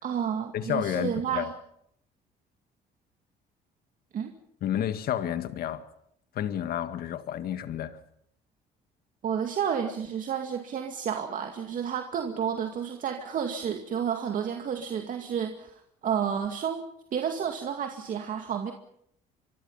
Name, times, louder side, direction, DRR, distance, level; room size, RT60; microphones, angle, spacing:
voice 1, 0.0-1.5 4.1-4.3 9.2-16.8 17.1-18.7, right 8 dB, 50° right, 2.3 m, -31 dB
voice 2, 0.5-1.5 4.6-5.9 6.3-8.0, left 10 dB, 65° left, 1.9 m, -30 dB
26.5 x 23.5 x 5.7 m
cardioid pair, 110°, 17 cm